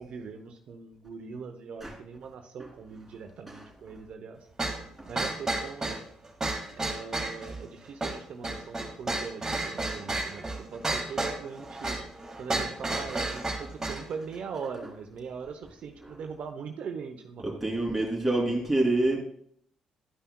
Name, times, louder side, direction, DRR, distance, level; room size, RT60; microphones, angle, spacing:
voice 1, 0.0-4.4 5.1-6.0 6.7-12.0 12.4-17.6 18.4-18.6, right 5 dB, 65° right, 5 dB, 0.7 m, -41 dB
sound 1, 4.6-14.1, right 2 dB, 20° right, 1.9 m, -32 dB
voice 2, 17.4-19.2, right 2 dB, 5° right, -3 dB, 3.0 m, -27 dB
11.0 x 5.6 x 2.3 m, 0.64 s
supercardioid pair, 60°, 2 cm